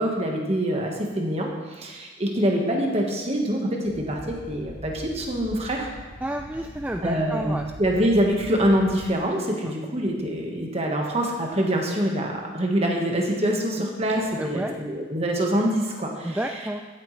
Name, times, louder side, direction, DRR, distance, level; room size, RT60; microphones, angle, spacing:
voice 1, 0.0-5.9 7.0-16.4, equal, 30° right, 0 dB, 1.4 m, -25 dB
sound 1, 3.8-9.1, equal, 85° right, 2.5 m, -42 dB
voice 2, 6.2-7.7 9.6-9.7 14.4-14.7 16.2-16.8, right 1 dB, 10° right, 4 dB, 0.3 m, -30 dB
15.0 x 8.9 x 3.3 m, 1.3 s
head